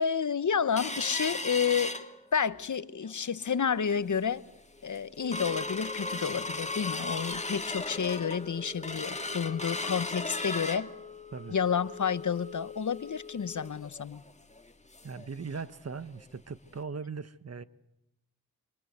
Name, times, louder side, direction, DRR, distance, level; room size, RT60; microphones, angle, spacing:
voice 1, 0.0-1.9 2.3-4.4 4.8-10.9 11.5-14.2, left 7 dB, 55° left, 1.1 m, -30 dB
sound 1, 0.8-2.6 3.0-3.1 3.5-3.8 4.3-4.4 4.7-15.3 15.6-15.7 16.1-16.2 16.8-16.9, left 2 dB, 20° left, 2.1 m, -37 dB
voice 2, 15.0-17.6, right 5 dB, 45° right, 1.2 m, -39 dB
25.5 x 25.0 x 8.1 m
cardioid pair, 55°, 36 cm